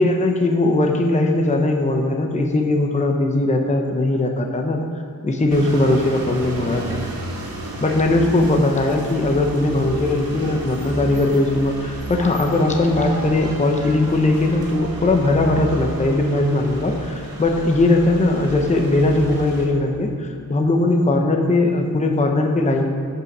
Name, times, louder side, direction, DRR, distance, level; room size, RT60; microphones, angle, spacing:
voice 1, 0.0-4.8 5.2-7.0 7.8-22.9, left 2 dB, 20° left, 2 dB, 0.8 m, -19 dB
sound 1, 5.5-19.6, right 2 dB, 85° right, 2.2 m, -32 dB
14.5 x 5.6 x 5.4 m, 2.2 s
wide cardioid pair, 170°, 35 cm